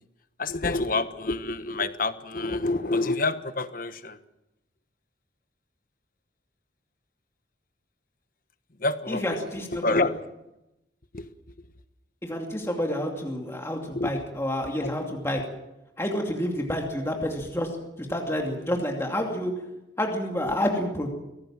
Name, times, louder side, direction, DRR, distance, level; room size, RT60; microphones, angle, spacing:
voice 1, 0.4-4.2 8.8-9.4 9.7-10.2 11.1-11.3 13.9-14.2 14.8-14.9 16.7-16.8, left 2 dB, 45° left, 11 dB, 1.2 m, -28 dB
voice 2, 9.1-10.0 12.2-15.4 16.0-17.7 18.1-19.5 20.0-21.1, left 1 dB, 15° left, 1 dB, 2.5 m, -29 dB
23.5 x 18.0 x 7.5 m, 0.93 s
head